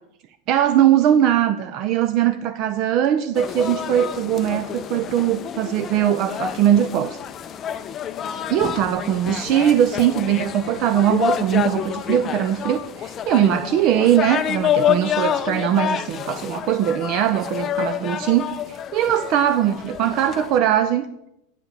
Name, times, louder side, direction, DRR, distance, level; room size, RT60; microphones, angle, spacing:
voice 1, 0.5-7.2 8.5-21.1, right 10 dB, 40° right, 11 dB, 0.4 m, -20 dB
sound 1, 3.4-20.6, left 9 dB, 25° left, 0.4 m, -28 dB
9.0 x 4.6 x 6.5 m, 0.85 s
supercardioid pair, 155°, 0 cm